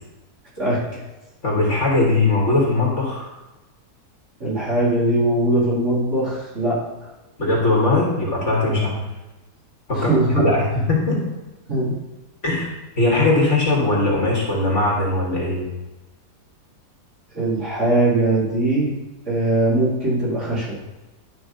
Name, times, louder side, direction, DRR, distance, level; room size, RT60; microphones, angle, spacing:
voice 1, 0.6-1.0 4.4-6.8 8.7-8.8 9.9-10.5 11.7-12.0 17.3-18.9 19.3-20.8, right 1 dB, 40° right, -8 dB, 4.0 m, -21 dB
voice 2, 1.4-3.3 7.4-9.0 9.9-11.2 12.4-12.7 13.0-15.7, left 2 dB, 45° left, -3 dB, 2.4 m, -20 dB
11.5 x 5.5 x 5.4 m, 1.1 s
omnidirectional pair, 1.9 m